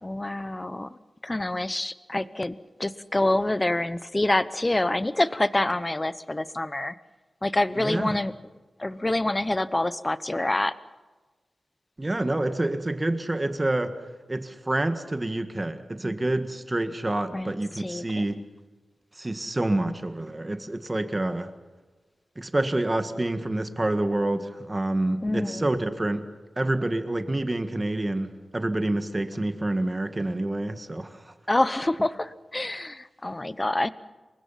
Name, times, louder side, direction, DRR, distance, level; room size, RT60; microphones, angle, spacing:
voice 1, 0.0-0.9 1.2-6.9 7.4-8.3 8.8-10.7 17.3-18.4 25.2-25.6 31.5-33.9, left 1 dB, 20° left, 15 dB, 0.8 m, -27 dB
voice 2, 7.7-8.2 12.0-13.9 14.3-18.4 19.2-21.5 22.4-26.3 26.6-31.1, right 1 dB, 20° right, 8 dB, 1.7 m, -27 dB
28.0 x 23.5 x 5.8 m, 1.3 s
wide cardioid pair, 120°, 0 cm